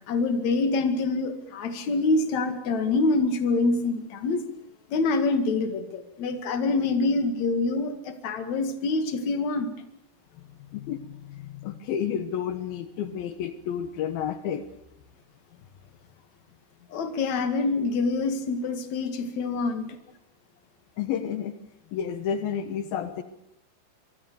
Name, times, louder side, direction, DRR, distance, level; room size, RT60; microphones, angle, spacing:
voice 1, 0.1-4.4 4.9-9.7 16.9-20.0, left 3 dB, 55° left, 8 dB, 3.2 m, -26 dB
voice 2, 10.7-14.6 21.0-21.5 21.9-23.2, left 8 dB, 80° left, 10 dB, 3.0 m, -31 dB
26.0 x 24.0 x 6.9 m, 0.77 s
omnidirectional pair, 4.2 m